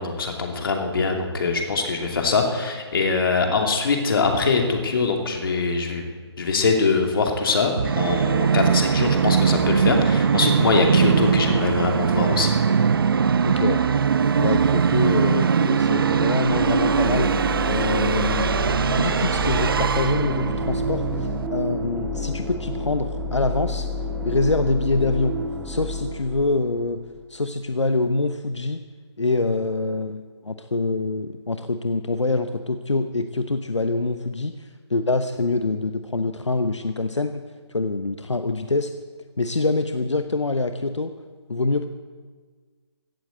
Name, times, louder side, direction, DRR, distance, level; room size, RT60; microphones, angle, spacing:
voice 1, 0.0-6.0 6.4-12.5, left 4 dB, 50° left, 3 dB, 2.7 m, -23 dB
Musical instrument, 7.8-21.5, right 6 dB, 50° right, 0.5 m, -21 dB
voice 2, 13.4-13.8 14.4-18.5 18.8-23.9 24.2-25.4 25.6-27.0 27.3-28.8 29.2-37.4 37.7-38.9 39.4-41.1 41.5-41.9, left 3 dB, 85° left, 9 dB, 0.9 m, -25 dB
sound 1, 16.4-27.2, left 2 dB, 5° right, 0.7 m, -30 dB
16.0 x 8.9 x 8.3 m, 1.5 s
figure-of-eight pair, 150°, 15 cm